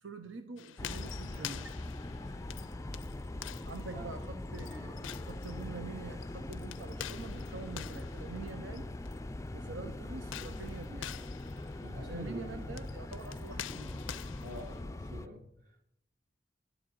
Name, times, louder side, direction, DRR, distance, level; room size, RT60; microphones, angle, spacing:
voice 1, 0.0-1.8 3.6-8.9 9.5-11.3 12.0-14.0, right 4 dB, 80° right, 8 dB, 0.9 m, -46 dB
sound 1, 0.6-9.2 10.2-14.8, left 11 dB, 80° left, 0.5 m, -47 dB
sound 2, 0.8-15.3, left 2 dB, 15° left, 0.4 m, -42 dB
voice 2, 3.8-4.3 11.8-12.8 14.4-15.9, equal, 45° right, 2 dB, 1.4 m, -46 dB
12.0 x 7.2 x 9.0 m, 0.76 s
head